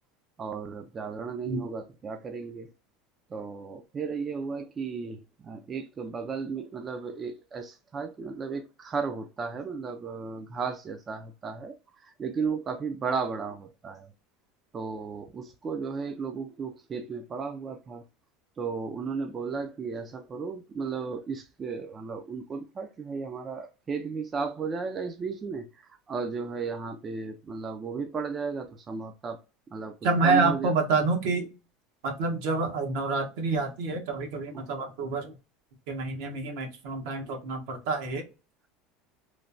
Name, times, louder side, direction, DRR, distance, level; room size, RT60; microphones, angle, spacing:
voice 1, 0.4-2.7 3.3-14.1 14.7-18.0 18.6-29.4 29.7-30.0 30.2-30.7 34.5-34.6, right 5 dB, 25° right, 0.3 m, -34 dB
voice 2, 30.0-31.5 32.0-35.3 35.9-38.3, right 3 dB, 70° right, 0.9 m, -28 dB
3.1 x 2.1 x 2.5 m
supercardioid pair, 130°, 0 cm